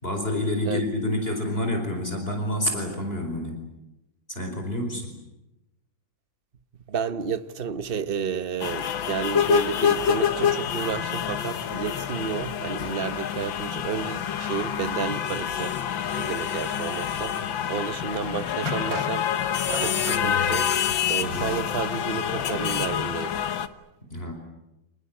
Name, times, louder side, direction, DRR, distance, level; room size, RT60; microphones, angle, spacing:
voice 1, 0.0-3.6 4.3-5.1 21.2-21.6 24.1-24.3, left 1 dB, 25° left, 5.1 m, -28 dB
voice 2, 6.9-15.7 16.2-17.4 17.7-19.3 19.7-20.7 21.1-23.3, right 6 dB, 35° right, 1.0 m, -31 dB
sound 1, 8.6-23.7, left 8 dB, 70° left, 1.9 m, -27 dB
sound 2, 18.7-20.3, right 5 dB, 65° right, 2.1 m, -36 dB
28.0 x 20.0 x 8.9 m
omnidirectional pair, 2.2 m